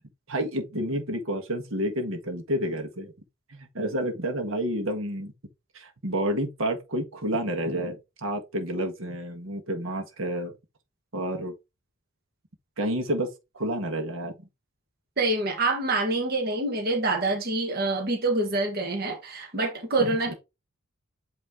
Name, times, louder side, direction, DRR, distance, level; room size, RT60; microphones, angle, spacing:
voice 1, 0.3-3.1 3.5-5.3 5.7-10.5 11.1-11.5 12.8-13.3 13.5-14.4 20.0-20.2, equal, 75° right, 1.4 m, -29 dB
voice 2, 15.2-20.3, right 2 dB, 50° right, 1.3 m, -26 dB
8.6 x 3.1 x 3.7 m
head